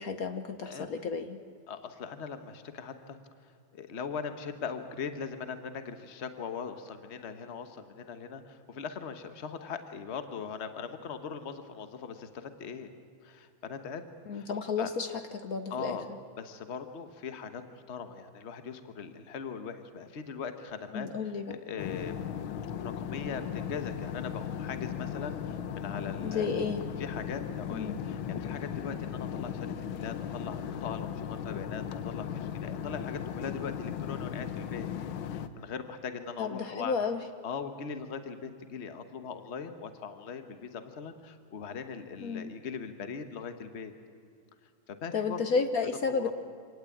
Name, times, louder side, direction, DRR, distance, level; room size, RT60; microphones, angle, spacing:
voice 1, 0.0-1.4 14.3-16.0 20.9-21.6 26.2-26.9 27.7-28.0 36.4-37.2 42.2-42.5 45.1-46.3, left 5 dB, 55° left, 8 dB, 1.2 m, -32 dB
voice 2, 1.7-3.2 3.7-12.9 13.2-14.0 14.3-14.5 14.8-14.9 15.7-16.0 16.4-22.2 22.8-26.5 27.0-34.9 35.3-36.9 37.4-43.9 44.9-45.6 46.1-46.3, left 6 dB, 40° left, 8 dB, 1.3 m, -40 dB
sound 1, 21.8-35.5, left 8 dB, 80° left, 1.7 m, -37 dB
26.0 x 18.0 x 8.6 m, 2.4 s
omnidirectional pair, 2.2 m